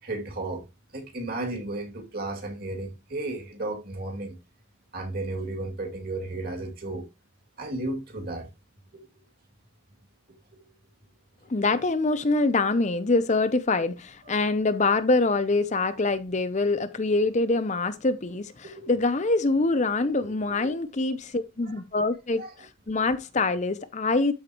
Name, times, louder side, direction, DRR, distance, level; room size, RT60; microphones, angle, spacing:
voice 1, 0.0-0.7 0.9-4.4 4.9-7.1 7.6-8.5 12.6-12.7 13.8-13.9 14.2-14.4 14.9-15.0 18.6-18.9 20.0-20.7 21.6-21.8 22.4-22.5, right 2 dB, 45° right, 2.5 m, -34 dB
voice 2, 11.5-24.3, left 3 dB, 35° left, 0.6 m, -25 dB
13.0 x 4.4 x 3.0 m
head